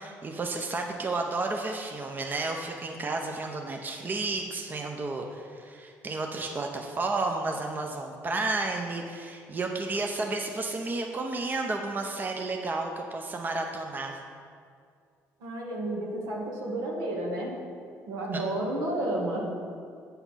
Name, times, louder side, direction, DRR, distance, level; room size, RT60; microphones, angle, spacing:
voice 1, 0.0-14.2 18.3-18.4, right 3 dB, 30° right, 2 dB, 0.8 m, -32 dB
voice 2, 15.4-17.6 18.1-19.4, right 1 dB, 85° right, -3 dB, 2.0 m, -31 dB
8.3 x 5.8 x 5.7 m, 2.2 s
supercardioid pair, 80°, 6 cm